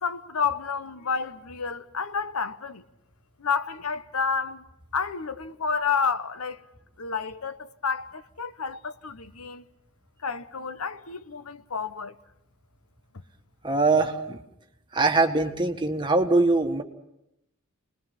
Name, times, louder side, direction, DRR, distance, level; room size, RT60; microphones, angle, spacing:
voice 1, 0.0-2.8 3.4-4.6 4.9-6.6 7.0-9.6 10.2-12.1, left 5 dB, 85° left, 1.0 m, -30 dB
voice 2, 13.6-14.4 14.9-16.8, right 3 dB, 20° right, 1.6 m, -22 dB
29.0 x 21.0 x 5.8 m
head